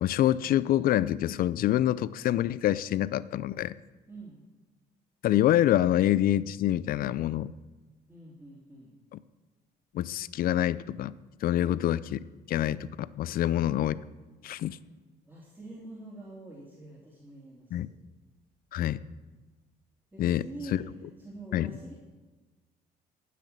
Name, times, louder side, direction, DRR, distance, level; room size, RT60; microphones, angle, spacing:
voice 1, 0.0-3.7 5.2-7.5 9.1-9.2 9.9-11.1 11.4-12.2 12.5-14.0 14.4-14.8 17.7-17.9 18.7-19.0 20.2-20.4 20.7-20.8 21.5-21.7, left 12 dB, 60° left, 17 dB, 0.5 m, -26 dB
voice 2, 4.1-4.4 8.1-8.9 11.5-11.8 13.3-13.6 14.6-14.8 15.2-17.9 18.8-19.1 20.1-21.9, right 2 dB, 10° right, -5 dB, 2.8 m, -46 dB
12.5 x 6.0 x 8.8 m, 1.2 s
cardioid pair, 110°, 17 cm